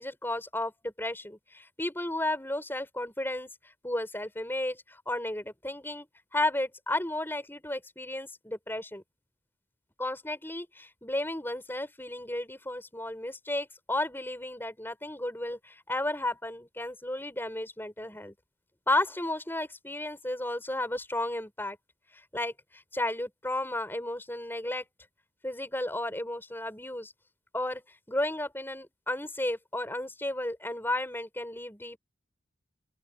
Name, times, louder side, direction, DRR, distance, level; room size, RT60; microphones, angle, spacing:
voice 1, 0.0-6.1 6.3-9.0 10.0-18.3 18.9-21.8 22.1-24.8 25.4-27.1 27.5-32.0, left 1 dB, 10° left, 6.3 m, -33 dB
open air
head